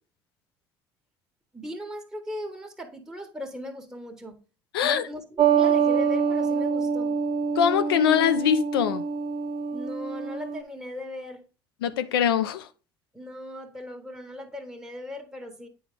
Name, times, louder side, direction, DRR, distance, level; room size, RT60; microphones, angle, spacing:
voice 1, 1.5-4.4 4.8-7.1 9.7-11.4 13.1-15.7, left 1 dB, 5° right, 1.4 m, -38 dB
voice 2, 4.7-5.1 7.6-9.1 11.8-12.7, left 9 dB, 85° left, 0.4 m, -23 dB
sound 1, 5.4-10.6, right 6 dB, 45° right, 0.8 m, -25 dB
8.2 x 4.6 x 3.5 m
hypercardioid pair, 65°, 12 cm